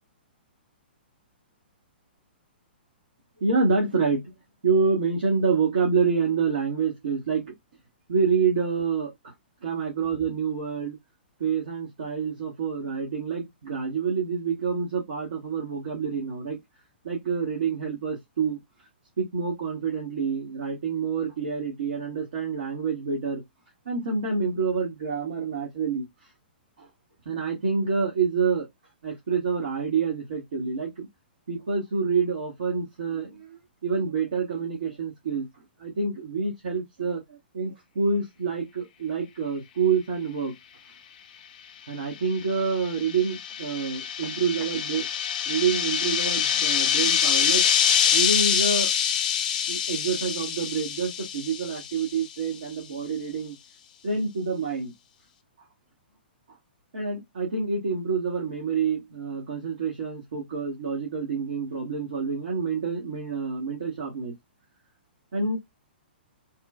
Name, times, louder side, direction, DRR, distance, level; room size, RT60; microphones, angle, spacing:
voice 1, 3.4-4.2 4.6-7.5 8.1-9.3 9.6-11.0 11.4-16.6 17.0-18.6 19.2-23.4 23.9-26.0 26.8-26.9 27.2-28.7 29.0-31.1 31.5-35.4 35.8-40.5 41.9-45.1 45.5-47.6 48.1-48.9 49.7-53.5 54.0-54.9 56.9-64.3 65.3-65.6, right 5 dB, 60° right, 1.0 m, -27 dB
sound 1, 42.4-52.2, left 8 dB, 45° left, 0.5 m, -25 dB
3.0 x 2.2 x 2.2 m
figure-of-eight pair, 115°, 6 cm